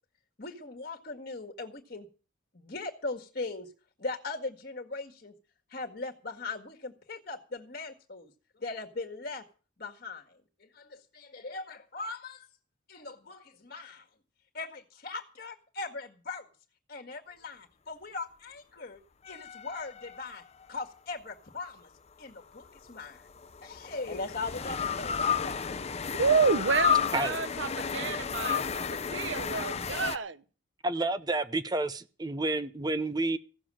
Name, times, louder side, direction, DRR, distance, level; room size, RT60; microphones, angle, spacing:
voice 1, 0.4-2.1 2.5-3.7 4.0-5.3 5.7-9.4 9.8-12.5 12.9-14.1 14.5-16.5 16.9-19.0 19.3-20.4 20.7-21.9 22.2-23.3 23.6-25.9, left 3 dB, 50° left, 1.8 m, -39 dB
sound 1, 19.2-20.8 22.6-30.2, left 7 dB, 35° left, 0.6 m, -32 dB
voice 2, 26.1-30.4, right 5 dB, 75° right, 0.9 m, -29 dB
voice 3, 30.8-33.4, right 2 dB, 20° right, 0.7 m, -30 dB
16.0 x 7.1 x 8.8 m
head